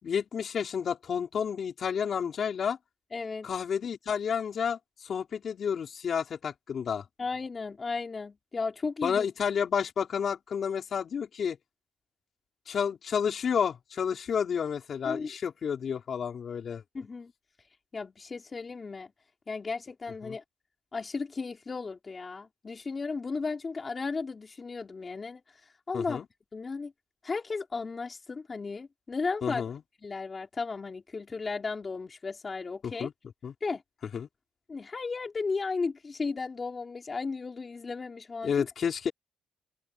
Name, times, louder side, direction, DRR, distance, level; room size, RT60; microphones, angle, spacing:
voice 1, 0.0-2.8 3.4-7.1 9.0-11.6 12.7-16.8 20.2-20.4 25.9-26.2 29.4-29.8 32.8-33.1 33.4-33.5 34.1-34.3 38.4-39.1, left 7 dB, 55° left, 4.3 m, -30 dB
voice 2, 3.1-3.5 7.2-9.3 15.1-15.3 16.9-17.3 17.9-19.1 19.5-20.4 20.9-25.4 25.9-26.2 26.5-26.9 27.2-29.6 30.0-33.1 33.6-33.8 34.7-38.7, left 4 dB, 30° left, 3.4 m, -35 dB
cardioid pair, 90°, 0 cm